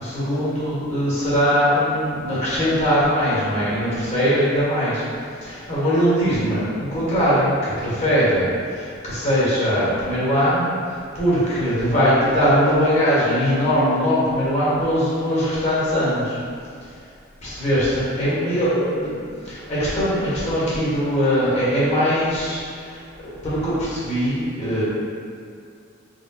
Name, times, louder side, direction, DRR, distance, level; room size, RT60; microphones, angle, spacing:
voice 1, 0.0-5.0 5.4-16.4 17.4-24.8, equal, 35° left, -10 dB, 1.3 m, -21 dB
4.1 x 2.2 x 4.1 m, 2.3 s
head